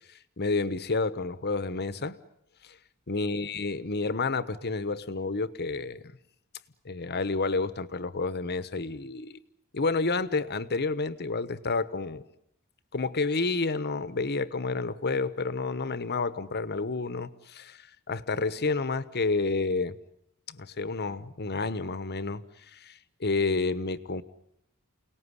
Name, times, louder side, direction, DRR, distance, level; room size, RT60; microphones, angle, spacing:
voice 1, 0.4-2.2 2.6-2.8 3.1-6.0 6.8-9.4 9.7-12.2 12.9-20.0 20.5-24.2, left 3 dB, 45° left, 14 dB, 1.1 m, -30 dB
29.0 x 18.5 x 9.8 m, 0.79 s
head